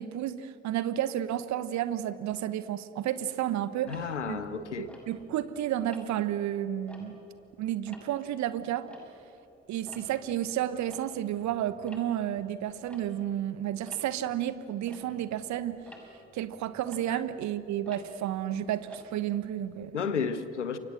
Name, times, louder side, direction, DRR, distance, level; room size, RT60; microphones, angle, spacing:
voice 1, 0.0-4.4 4.8-7.2 7.6-8.9 9.7-15.8 16.3-20.1, right 11 dB, 55° right, 1.3 m, -31 dB
voice 2, 3.9-4.9 17.1-17.2 19.9-20.8, left 6 dB, 85° left, 1.1 m, -32 dB
Tick-tock, 3.9-5.5 5.9-6.3 6.7-9.5 9.7-19.8, equal, 5° left, 6.3 m, -53 dB
29.0 x 24.0 x 7.8 m
figure-of-eight pair, 45°, 35 cm